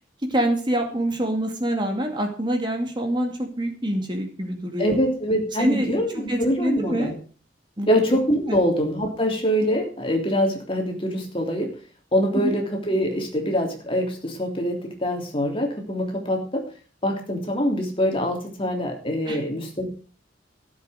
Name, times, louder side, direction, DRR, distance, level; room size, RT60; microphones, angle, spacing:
voice 1, 0.3-5.0 5.6-6.0 6.3-7.1 7.8-8.6 12.3-12.5 19.3-19.4, right 1 dB, 25° right, 3 dB, 2.3 m, -26 dB
voice 2, 4.8-7.1 7.9-11.7 12.1-16.6 17.0-19.9, equal, 30° left, 2 dB, 3.2 m, -24 dB
15.0 x 8.0 x 6.4 m, 0.39 s
head